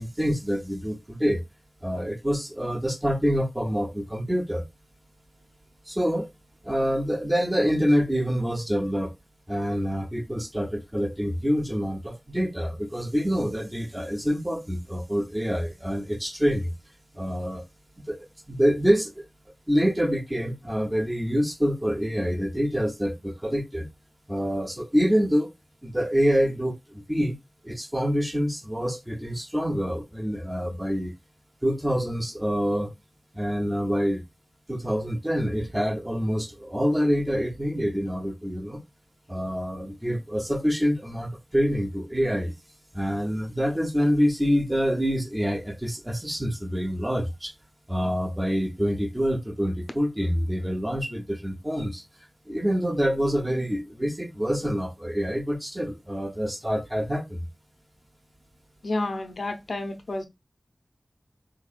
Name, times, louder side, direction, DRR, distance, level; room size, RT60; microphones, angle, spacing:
voice 1, 0.0-1.4 1.8-4.6 5.9-6.3 6.6-9.1 9.5-16.7 17.1-17.6 18.1-19.2 19.7-23.9 24.3-25.5 25.8-27.4 27.6-31.1 31.6-32.9 33.3-34.2 34.7-38.8 39.3-42.5 42.9-47.5 47.9-52.0 52.5-57.4, equal, 20° right, 0.8 m, -26 dB
voice 2, 58.8-60.3, left 2 dB, 90° left, 0.5 m, -30 dB
3.7 x 3.1 x 2.4 m
wide cardioid pair, 50°, 0 cm